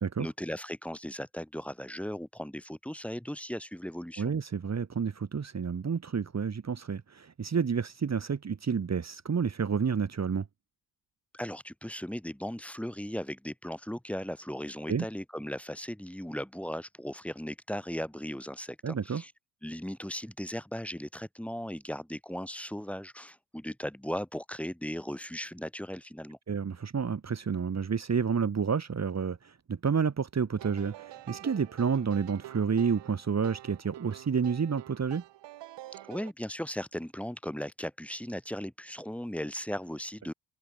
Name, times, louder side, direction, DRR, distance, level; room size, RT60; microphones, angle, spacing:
voice 1, 0.2-4.3 11.3-19.3 19.6-26.4 36.1-40.3, equal, 5° left, 5.8 m, -37 dB
voice 2, 4.2-10.4 14.9-15.1 18.8-19.2 26.5-35.2, right 6 dB, 40° right, 2.7 m, -30 dB
sound 1, 30.6-36.3, right 15 dB, 80° right, 5.9 m, -47 dB
supercardioid pair, 65°, 42 cm